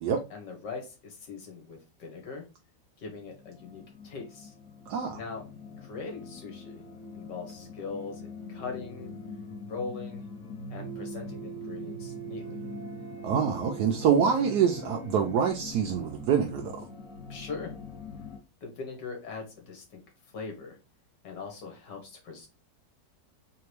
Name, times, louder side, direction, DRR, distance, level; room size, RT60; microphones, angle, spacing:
voice 1, 0.3-2.5 3.0-4.5 5.1-5.5 5.8-6.8 7.1-9.1 9.7-10.2 10.7-12.6 17.3-17.7 18.6-20.0 20.3-20.8 21.2-22.5, left 4 dB, 75° left, 1.9 m, -41 dB
sound 1, 3.2-18.4, left 1 dB, 60° left, 1.0 m, -42 dB
voice 2, 4.9-5.2 13.2-16.8, right 7 dB, 75° right, 1.1 m, -26 dB
3.9 x 3.4 x 3.1 m
omnidirectional pair, 1.9 m